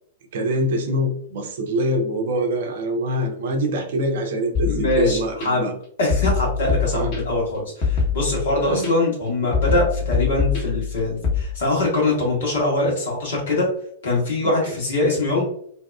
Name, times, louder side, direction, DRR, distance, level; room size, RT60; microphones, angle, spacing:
voice 1, 0.3-5.7 6.9-7.1 8.6-8.9 14.4-14.8, equal, 55° right, 3 dB, 0.5 m, -24 dB
sound 1, 4.5-5.5 6.1-7.4 7.8-8.9 9.5-11.4, left 5 dB, 40° left, 1.0 m, -24 dB
voice 2, 4.6-5.6 6.0-13.7 14.0-15.4, left 2 dB, 60° left, -3 dB, 1.3 m, -23 dB
2.7 x 2.3 x 2.2 m, 0.66 s
figure-of-eight pair, 100°, 0 cm